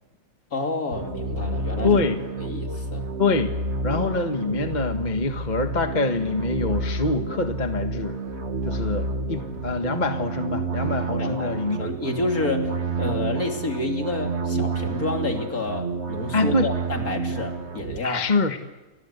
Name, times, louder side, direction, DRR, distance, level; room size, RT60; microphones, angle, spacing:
voice 1, 0.5-2.0 2.4-3.0 11.2-18.3, left 3 dB, 50° left, 4 dB, 3.4 m, -29 dB
sound 1, 0.9-18.0, right 3 dB, 40° right, 1.8 m, -29 dB
voice 2, 1.8-2.2 3.2-3.5 3.8-8.2 8.6-11.9 16.3-16.7 18.0-18.6, left 3 dB, 25° left, 6 dB, 1.5 m, -25 dB
30.0 x 24.5 x 8.2 m, 1.2 s
omnidirectional pair, 2.0 m